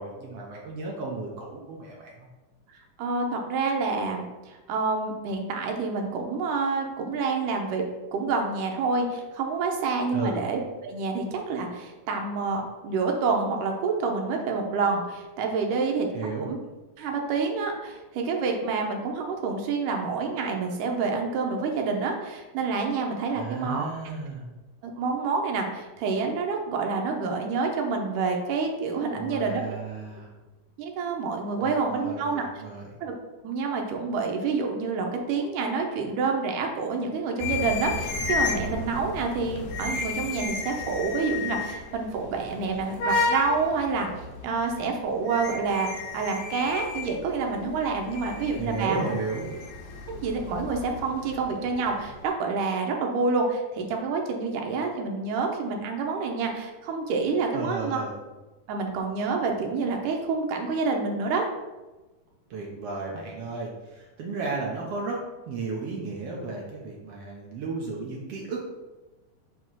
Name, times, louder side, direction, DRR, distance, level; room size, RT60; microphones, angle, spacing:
voice 1, 0.0-2.3 10.1-10.4 16.1-16.5 23.3-24.5 29.1-30.3 31.6-32.9 48.6-49.5 57.5-58.1 62.5-68.7, right 3 dB, 65° right, -1 dB, 1.6 m, -34 dB
voice 2, 3.0-7.8 8.1-16.1 16.4-16.6 17.0-23.9 24.8-29.6 30.8-32.5 33.0-33.1 33.4-44.1 44.4-49.1 50.1-58.0 58.7-61.5, right 4 dB, 85° right, 2 dB, 2.5 m, -28 dB
sound 1, 37.4-52.3, left 3 dB, 85° left, 2.5 m, -33 dB
7.2 x 3.1 x 6.1 m, 1.1 s
omnidirectional pair, 3.7 m